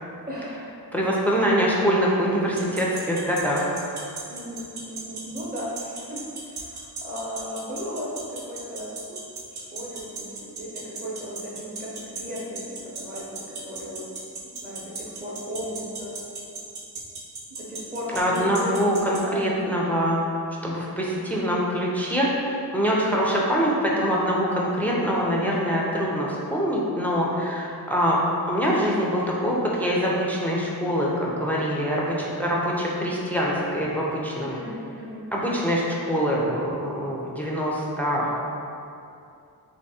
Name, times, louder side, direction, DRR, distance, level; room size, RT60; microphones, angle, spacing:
voice 1, 0.3-0.8 4.3-9.2 9.5-14.0 14.4-16.1 17.5-19.8 24.9-25.3 34.5-35.3, equal, 25° right, -6 dB, 0.8 m, -36 dB
voice 2, 0.9-3.8 18.1-20.2 20.6-28.2 28.5-34.5 35.3-35.8 36.1-38.3, equal, 5° left, -4 dB, 0.4 m, -24 dB
sound 1, 2.6-19.2, right 4 dB, 85° right, 0.8 m, -35 dB
3.4 x 2.9 x 4.1 m, 2.5 s
wide cardioid pair, 165°, 38 cm